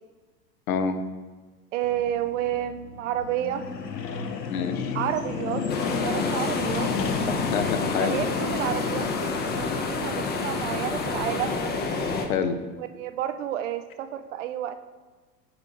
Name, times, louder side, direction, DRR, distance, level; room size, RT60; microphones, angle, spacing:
voice 1, 0.7-1.0 4.5-5.0 7.3-8.2 12.3-12.6, left 6 dB, 60° left, 8 dB, 0.8 m, -27 dB
voice 2, 1.7-3.7 4.9-5.6 6.0-6.9 8.0-11.6 12.8-14.8, right 11 dB, 50° right, 10 dB, 0.6 m, -30 dB
sound 1, 1.8-11.6, left 5 dB, 90° left, 0.7 m, -33 dB
sound 2, 5.7-12.3, left 3 dB, 20° left, 0.7 m, -29 dB
9.6 x 3.7 x 3.7 m, 1.4 s
figure-of-eight pair, 90°, 48 cm